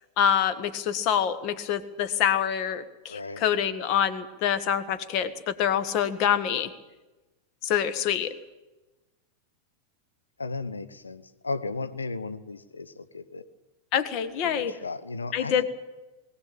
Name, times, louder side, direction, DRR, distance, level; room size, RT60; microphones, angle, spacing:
voice 1, 0.2-6.7 7.6-8.3 13.9-14.7 15.3-15.6, left 9 dB, 40° left, 11 dB, 1.7 m, -26 dB
voice 2, 3.1-3.4 10.4-13.5 14.4-15.6, left 3 dB, 75° left, 11 dB, 1.1 m, -35 dB
21.0 x 17.5 x 8.9 m, 1.1 s
figure-of-eight pair, 90°, 0 cm